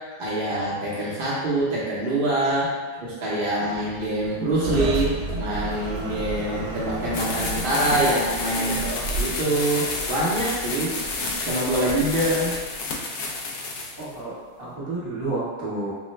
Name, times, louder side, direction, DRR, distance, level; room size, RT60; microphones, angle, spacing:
voice 1, 0.0-2.7 3.0-8.8 9.1-10.9 11.2-12.5, right 1 dB, 55° right, -7 dB, 0.6 m, -25 dB
sound 1, 3.7-12.8, right 1 dB, 75° right, 1.1 m, -33 dB
sound 2, 7.1-14.0, left 3 dB, 75° left, 1.1 m, -30 dB
voice 2, 8.5-9.1 14.0-15.9, right 2 dB, 40° right, -8 dB, 1.3 m, -31 dB
4.6 x 2.1 x 3.1 m, 1.5 s
omnidirectional pair, 1.7 m